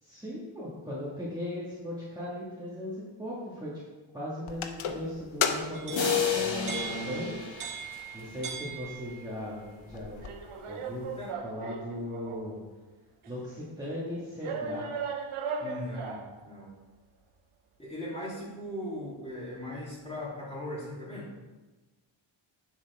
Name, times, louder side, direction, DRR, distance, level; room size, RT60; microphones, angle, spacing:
voice 1, 0.0-3.7 4.1-7.4 8.1-10.2 10.7-11.1 11.4-12.6 13.3-14.9, left 1 dB, 10° right, -9 dB, 2.1 m, -38 dB
sound 1, 4.5-7.6 7.9-8.0 8.8-8.9 9.3-9.4 9.7-10.3, left 8 dB, 80° left, 0.9 m, -31 dB
sound 2, 5.7-9.4 10.2-12.5 13.2-13.3 14.4-16.4, right 5 dB, 90° right, 1.0 m, -38 dB
sound 3, 5.9-8.6, left 3 dB, 65° left, 1.6 m, -35 dB
voice 2, 15.6-16.7 17.8-21.3, left 1 dB, 15° left, -7 dB, 3.2 m, -39 dB
10.0 x 7.4 x 3.6 m, 1.2 s
wide cardioid pair, 125°, 49 cm